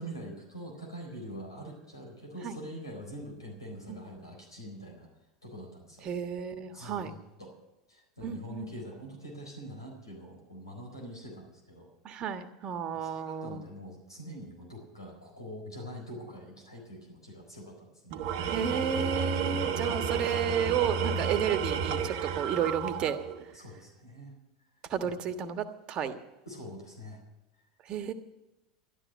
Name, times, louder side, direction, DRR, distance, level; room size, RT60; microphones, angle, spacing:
voice 1, 0.0-5.1 5.4-6.1 6.7-7.5 7.9-11.9 12.9-18.3 23.5-24.3 25.0-25.1 26.5-27.2, equal, 90° left, 1 dB, 4.2 m, -44 dB
voice 2, 6.0-7.1 8.2-8.7 12.0-13.6 18.4-23.2 24.9-26.2 27.8-28.1, right 8 dB, 40° right, 9 dB, 1.4 m, -32 dB
Tools, 18.1-23.5, right 6 dB, 55° right, 1.1 m, -31 dB
12.5 x 12.5 x 6.4 m, 1.0 s
figure-of-eight pair, 80°, 2 cm